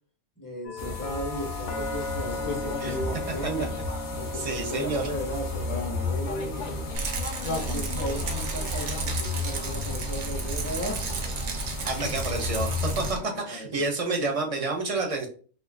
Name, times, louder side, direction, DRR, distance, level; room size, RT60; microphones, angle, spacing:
voice 1, 0.4-3.7 4.1-6.8 7.6-11.0 11.7-12.2 13.0-13.9, equal, 20° left, -1 dB, 0.9 m, -36 dB
sound 1, 0.6-14.5, left 3 dB, 85° left, 0.9 m, -40 dB
sound 2, 0.8-13.1, left 3 dB, 50° left, 0.7 m, -33 dB
voice 2, 4.4-5.1 11.8-15.3, right 3 dB, 40° right, 2 dB, 0.6 m, -29 dB
Rattle, 6.9-13.2, right 5 dB, 75° right, 0.9 m, -34 dB
3.6 x 2.6 x 2.3 m, 0.41 s
omnidirectional pair, 1.2 m